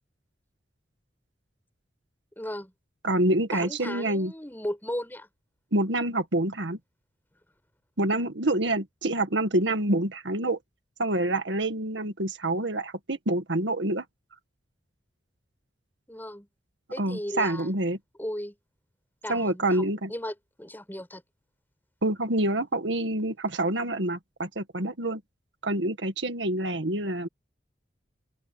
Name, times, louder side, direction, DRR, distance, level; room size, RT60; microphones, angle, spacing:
voice 1, 2.4-2.7 3.5-5.3 16.1-16.5 16.9-17.7 18.2-18.5 19.2-21.2, left 1 dB, 10° left, 6.6 m, -36 dB
voice 2, 3.0-4.3 5.7-6.8 8.0-10.6 11.0-14.0 17.0-18.0 19.3-20.1 22.0-25.2 25.6-27.3, right 1 dB, 80° right, 1.8 m, -27 dB
open air
head